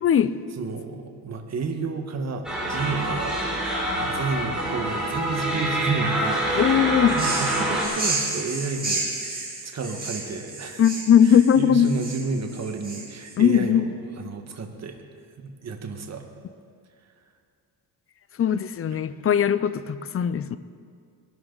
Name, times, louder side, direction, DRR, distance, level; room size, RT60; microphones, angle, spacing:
voice 1, 0.0-0.4 6.5-7.2 10.8-11.9 13.4-13.9 18.4-20.6, left 8 dB, 35° left, 14 dB, 0.6 m, -19 dB
voice 2, 0.6-6.8 7.1-9.1 9.6-10.8 11.3-13.8 14.2-15.0 15.4-16.2, right 4 dB, 40° right, 4 dB, 1.5 m, -31 dB
sound 1, 2.4-7.8, right 1 dB, ahead, 4.8 m, -26 dB
sound 2, 7.1-13.3, right 3 dB, 20° right, 3.3 m, -31 dB
21.5 x 12.5 x 3.9 m, 2.2 s
cardioid pair, 105°, 39 cm